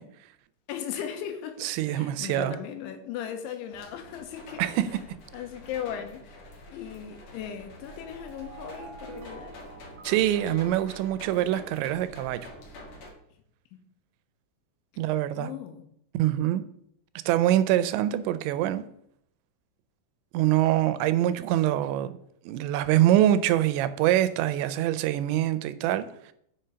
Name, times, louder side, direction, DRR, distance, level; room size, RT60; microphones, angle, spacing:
voice 1, 0.7-4.7 5.3-9.6 13.7-13.8 15.3-15.8, left 9 dB, 90° left, 3.4 m, -38 dB
voice 2, 1.6-2.6 4.6-4.9 10.0-12.5 15.0-15.5 16.1-16.6 17.3-18.8 20.3-22.1 22.5-26.3, right 13 dB, 85° right, 2.8 m, -24 dB
sound 1, 3.7-13.1, left 1 dB, 60° left, 1.9 m, -47 dB
sound 2, 7.8-11.7, right 3 dB, 65° right, 1.7 m, -48 dB
7.6 x 5.2 x 5.6 m
omnidirectional pair, 5.3 m